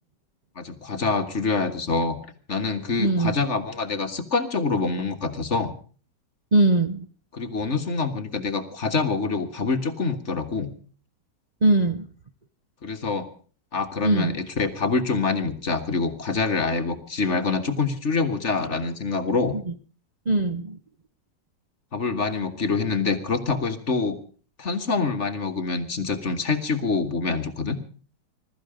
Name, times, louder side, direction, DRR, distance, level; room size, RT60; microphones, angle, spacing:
voice 1, 0.6-2.2 2.5-5.7 7.3-10.7 12.8-13.3 13.7-19.6 21.9-24.2 24.6-27.8, left 4 dB, 40° left, 7 dB, 1.8 m, -26 dB
voice 2, 3.0-3.3 6.5-7.1 11.6-12.1 14.0-14.4 19.5-19.7 20.3-20.8, right 2 dB, 40° right, 7 dB, 0.6 m, -21 dB
21.5 x 13.5 x 5.1 m, 0.41 s
omnidirectional pair, 1.9 m